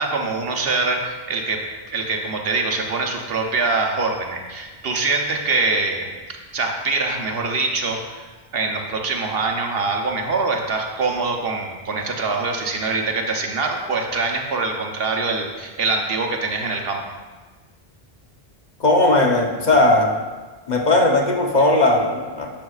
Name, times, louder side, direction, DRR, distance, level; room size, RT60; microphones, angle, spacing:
voice 1, 0.0-1.6 1.9-6.1 6.5-17.0, right 3 dB, 70° right, 2 dB, 1.0 m, -24 dB
voice 2, 18.8-20.1 20.7-22.5, left 2 dB, 50° left, 1 dB, 0.9 m, -17 dB
10.5 x 6.3 x 2.4 m, 1.3 s
omnidirectional pair, 1.0 m